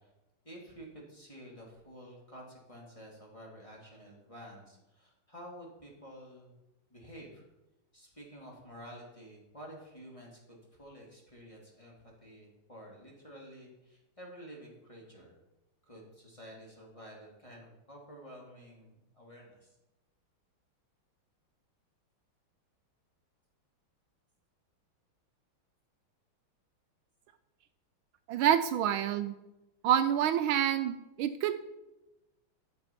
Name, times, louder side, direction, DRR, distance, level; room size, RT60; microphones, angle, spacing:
voice 1, 0.4-6.5 6.9-7.4 7.9-15.4 15.9-19.7, equal, 15° left, -2 dB, 2.5 m, -50 dB
voice 2, 28.3-29.3 29.8-31.5, right 10 dB, 80° right, 10 dB, 1.4 m, -27 dB
12.0 x 6.9 x 5.7 m, 0.98 s
omnidirectional pair, 2.3 m